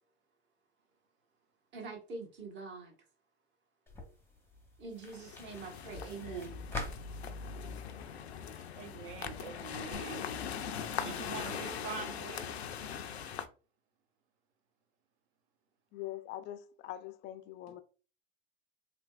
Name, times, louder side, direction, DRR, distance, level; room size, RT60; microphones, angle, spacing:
voice 1, 1.7-2.9 4.8-6.6, right 4 dB, 35° right, 1.4 m, -44 dB
sound 1, 3.9-9.9, left 2 dB, 10° left, 0.8 m, -47 dB
sound 2, 5.0-13.5, left 7 dB, 85° left, 0.5 m, -41 dB
voice 2, 8.5-10.3 11.0-12.5, right 6 dB, 50° right, 0.9 m, -44 dB
voice 3, 15.9-17.8, left 13 dB, 35° left, 0.5 m, -43 dB
3.4 x 2.9 x 2.4 m
hypercardioid pair, 90°, 31 cm